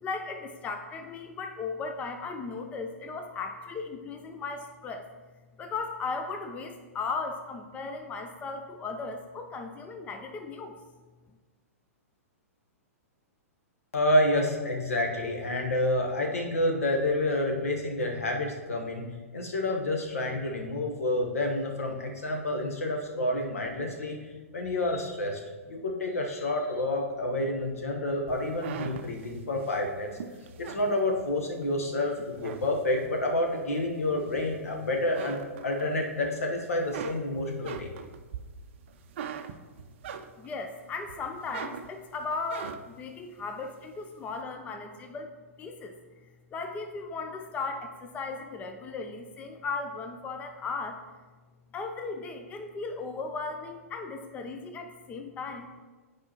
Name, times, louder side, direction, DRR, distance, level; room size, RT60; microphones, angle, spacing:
voice 1, 0.0-5.1 5.6-10.8 40.4-45.3 45.6-46.0 46.5-51.0 51.7-55.8, left 4 dB, 15° left, 5 dB, 0.4 m, -36 dB
voice 2, 13.9-19.0 19.3-24.2 24.5-25.4 25.7-30.1 30.6-37.9, left 1 dB, 70° left, 2 dB, 1.2 m, -29 dB
sound 1, 28.3-31.7 32.1-33.2 33.7-34.7 35.0-36.3 36.6-40.7 41.1-43.1, right 7 dB, 50° right, 0.5 m, -41 dB
9.5 x 4.8 x 3.0 m, 1.3 s
figure-of-eight pair, 110°, 8 cm